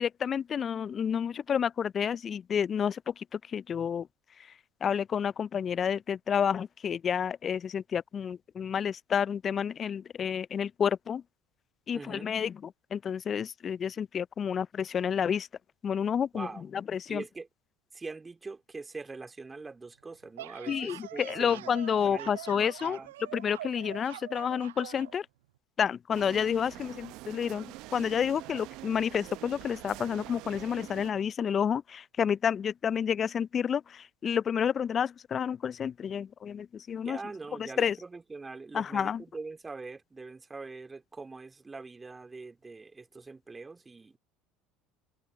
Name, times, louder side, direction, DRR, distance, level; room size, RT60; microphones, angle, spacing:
voice 1, 0.0-4.1 4.4-4.5 4.8-11.2 11.9-15.5 15.8-17.2 20.7-23.0 23.3-25.3 25.8-37.2 37.6-38.0 38.7-39.2, left 7 dB, 40° left, 0.4 m, -30 dB
voice 2, 11.9-12.3 16.3-16.6 17.1-17.5 17.9-21.7 22.0-23.1 37.0-44.2, right 3 dB, 20° right, 3.0 m, -43 dB
sound 1, 20.1-25.1, right 14 dB, 80° right, 0.3 m, -44 dB
sound 2, 26.1-31.1, right 20 dB, 65° right, 0.8 m, -45 dB
hypercardioid pair, 70°, 0 cm